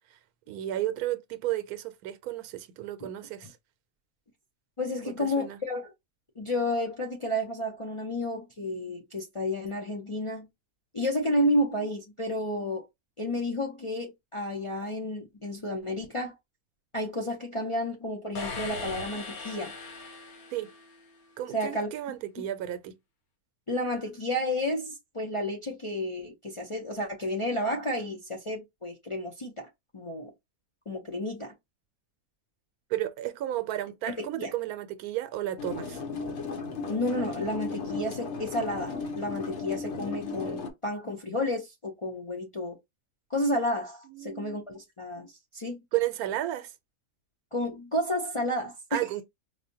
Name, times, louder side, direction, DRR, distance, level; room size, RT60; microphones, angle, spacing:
voice 1, 0.5-3.6 5.0-5.6 20.5-20.7 21.4-23.0 32.9-36.0 44.0-44.6 45.9-46.7 48.9-49.2, right 13 dB, 90° right, 1.1 m, -33 dB
voice 2, 4.8-5.9 6.4-10.5 10.9-12.9 13.2-16.3 16.9-19.7 21.5-21.9 23.7-30.3 30.9-31.5 34.2-34.5 36.9-42.8 43.3-45.8 47.5-49.0, left 1 dB, 35° left, 0.5 m, -31 dB
sound 1, 18.3-21.2, left 3 dB, 80° left, 1.4 m, -39 dB
sound 2, 35.6-40.7, left 4 dB, 60° left, 1.0 m, -35 dB
4.8 x 2.1 x 2.7 m
omnidirectional pair, 1.5 m